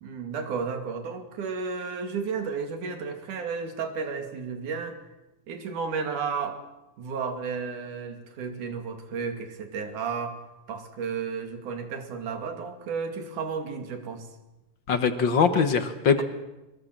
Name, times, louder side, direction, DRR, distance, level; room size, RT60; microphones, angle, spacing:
voice 1, 0.0-5.0 5.5-6.6 7.0-10.4 10.7-14.3 16.1-16.2, right 5 dB, 70° right, 6 dB, 3.8 m, -33 dB
voice 2, 14.9-16.2, left 6 dB, 55° left, 9 dB, 1.3 m, -22 dB
23.5 x 22.0 x 7.7 m, 0.99 s
omnidirectional pair, 3.8 m